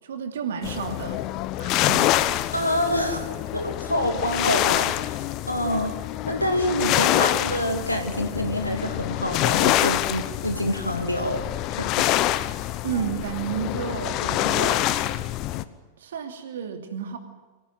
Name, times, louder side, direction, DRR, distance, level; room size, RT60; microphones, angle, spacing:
voice 1, 0.0-1.2 1.6-2.1 12.8-14.9 16.0-17.2, right 7 dB, 60° right, 5 dB, 3.0 m, -31 dB
sound 1, 0.6-15.6, left 14 dB, 40° left, 1.0 m, -26 dB
voice 2, 2.5-5.9 6.3-11.9, equal, 90° left, 5 dB, 1.9 m, -27 dB
25.0 x 17.5 x 9.4 m, 1.3 s
figure-of-eight pair, 90°, 0 cm